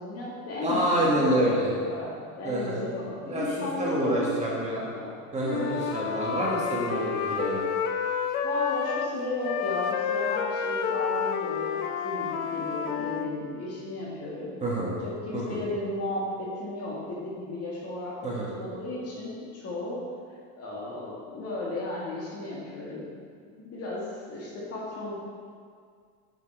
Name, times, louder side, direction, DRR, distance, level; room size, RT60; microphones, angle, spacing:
voice 1, 0.0-5.2 8.4-14.5 15.0-20.1 20.6-23.1 23.6-25.1, left 2 dB, 35° left, -4 dB, 2.1 m, -34 dB
voice 2, 0.6-1.7 2.4-2.8 3.2-4.8 5.3-7.6 14.6-14.9 15.3-15.6 18.2-18.5, right 1 dB, 15° right, -6 dB, 1.8 m, -27 dB
Wind instrument woodwind instrument, 5.4-9.1 9.4-13.3, left 7 dB, 75° left, 0.9 m, -30 dB
8.0 x 7.6 x 4.6 m, 2.1 s
supercardioid pair, 145°, 43 cm